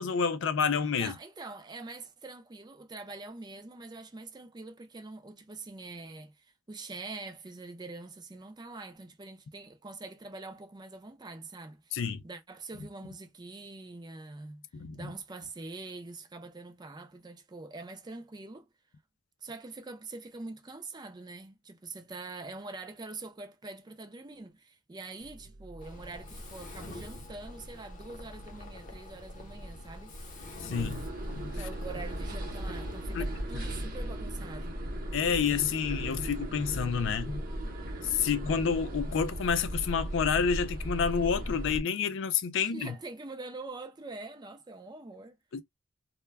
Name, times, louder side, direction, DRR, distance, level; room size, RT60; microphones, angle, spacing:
voice 1, 0.0-1.1 11.9-12.2 14.7-15.1 30.6-31.1 31.3-31.6 33.1-33.7 35.1-37.4 38.0-42.9 45.5-45.6, left 6 dB, 60° left, 0.4 m, -29 dB
voice 2, 1.0-14.6 14.9-18.7 19.4-30.1 31.5-34.8 42.6-45.4, right 3 dB, 20° right, 0.4 m, -44 dB
sound 1, 25.2-37.9, right 1 dB, 85° right, 0.8 m, -50 dB
Mechanisms, 25.8-33.4, left 1 dB, 40° left, 0.7 m, -47 dB
sound 2, 30.7-41.8, right 1 dB, 45° right, 0.8 m, -37 dB
2.1 x 2.1 x 3.3 m
head